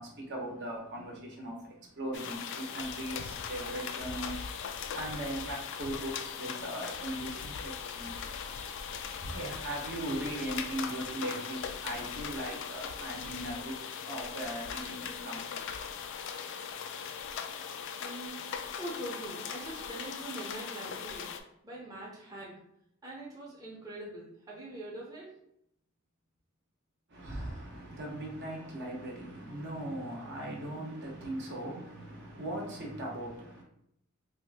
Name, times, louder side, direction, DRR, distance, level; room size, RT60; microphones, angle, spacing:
voice 1, 0.0-17.6 27.1-33.6, right 1 dB, 55° right, 0.8 m, -40 dB
sound 1, 2.1-21.4, left 7 dB, 60° left, 0.3 m, -39 dB
voice 2, 18.0-21.3 21.6-22.6 23.0-25.4, right 1 dB, 15° right, 0.6 m, -43 dB
2.7 x 2.5 x 3.4 m
head